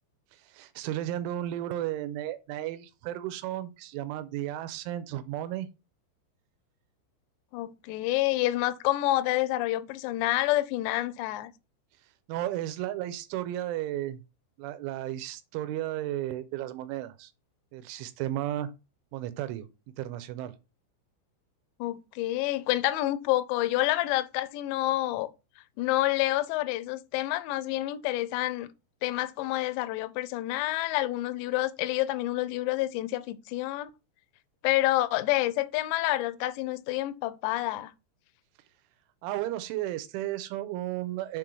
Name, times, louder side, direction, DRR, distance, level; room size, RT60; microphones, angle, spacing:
voice 1, 0.5-5.7 12.3-14.2 14.6-17.3 17.7-18.7 19.1-19.7 20.0-20.6 39.2-41.4, right 13 dB, 85° right, 3.1 m, -34 dB
voice 2, 7.5-11.5 21.8-25.3 25.8-28.7 29.0-33.9 34.6-37.9, left 16 dB, 85° left, 2.6 m, -28 dB
7.3 x 3.8 x 4.4 m
omnidirectional pair, 5.6 m